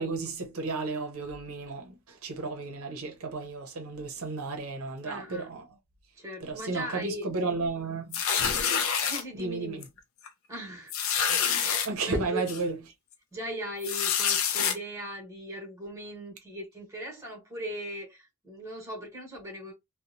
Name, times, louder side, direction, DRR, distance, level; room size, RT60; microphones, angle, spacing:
voice 1, 0.0-5.7 6.4-8.2 9.4-9.8 11.8-12.8, right 3 dB, 75° right, 0.6 m, -33 dB
voice 2, 5.0-5.5 6.2-7.3 9.0-9.8 10.5-10.9 11.3-11.6 12.0-12.5 13.3-19.7, right 1 dB, 15° right, 0.9 m, -39 dB
sound 1, 8.1-9.2 9.8-10.0 10.3-10.4 10.9-11.9 12.5-12.6 13.8-14.7, left 7 dB, 65° left, 0.5 m, -27 dB
2.8 x 2.0 x 2.5 m
head